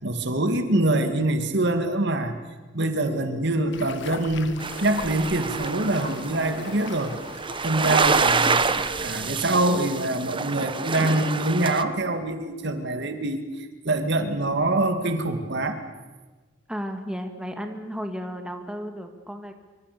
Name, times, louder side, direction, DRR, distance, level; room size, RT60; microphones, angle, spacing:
voice 1, 0.0-2.4 2.7-7.1 7.6-8.7 9.0-13.4 13.8-15.8, right 2 dB, 60° right, 7 dB, 2.3 m, -24 dB
sound 1, 3.7-9.8, left 4 dB, 65° left, 1.5 m, -41 dB
sound 2, 4.6-11.8, right 4 dB, 25° right, 1.0 m, -27 dB
voice 2, 16.7-19.5, equal, 5° right, 5 dB, 2.0 m, -34 dB
26.0 x 24.5 x 6.9 m, 1.3 s
head